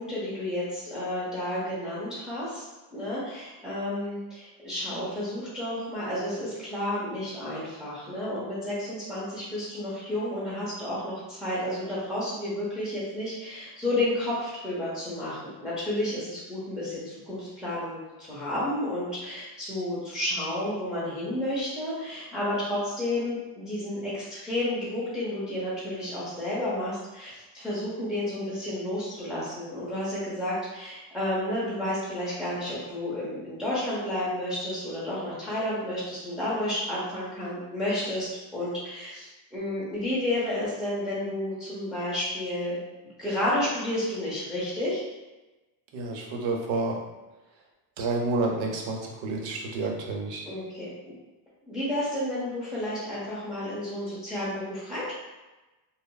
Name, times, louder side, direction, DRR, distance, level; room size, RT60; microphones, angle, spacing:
voice 1, 0.0-2.6 2.9-42.8 43.2-45.0 50.4-50.9 51.7-55.1, left 1 dB, ahead, -10 dB, 0.7 m, -31 dB
voice 2, 45.9-47.0 48.0-50.4, right 3 dB, 70° right, 0 dB, 0.7 m, -29 dB
3.9 x 2.0 x 2.2 m, 1.1 s
cardioid pair, 165°, 46 cm